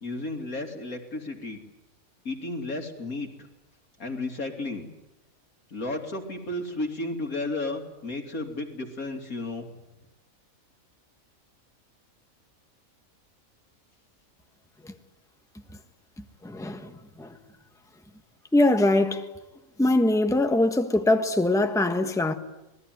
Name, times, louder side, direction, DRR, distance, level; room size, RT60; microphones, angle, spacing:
voice 1, 0.0-1.6 2.2-3.3 4.0-4.9 5.7-9.7, left 2 dB, 80° left, 3.4 m, -33 dB
voice 2, 16.4-16.9 17.2-17.3 18.5-19.3 19.8-22.3, left 2 dB, ahead, 1.4 m, -22 dB
27.0 x 20.0 x 9.4 m
omnidirectional pair, 1.5 m